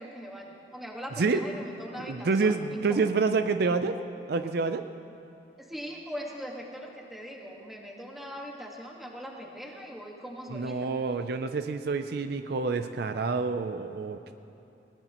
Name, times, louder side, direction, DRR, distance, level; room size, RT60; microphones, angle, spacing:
voice 1, 0.0-2.6 2.9-3.0 5.6-10.9, equal, ahead, -1 dB, 1.6 m, -41 dB
voice 2, 2.1-4.0 4.3-4.8 10.5-14.3, right 4 dB, 60° right, 8 dB, 0.5 m, -28 dB
20.0 x 18.5 x 3.0 m, 3.0 s
head